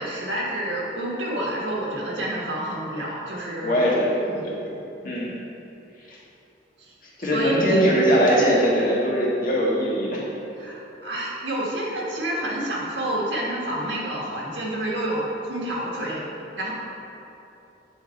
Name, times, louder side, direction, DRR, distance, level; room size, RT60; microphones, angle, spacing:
voice 1, 0.0-3.8 4.3-4.4 6.8-6.9 7.3-7.9 10.6-16.2 16.6-16.7, right 1 dB, 85° right, -4 dB, 1.7 m, -29 dB
voice 2, 3.6-4.1 5.0-5.3 6.1-6.2 7.2-10.2, equal, 45° left, -6 dB, 1.7 m, -21 dB
9.5 x 4.1 x 4.5 m, 2.9 s
head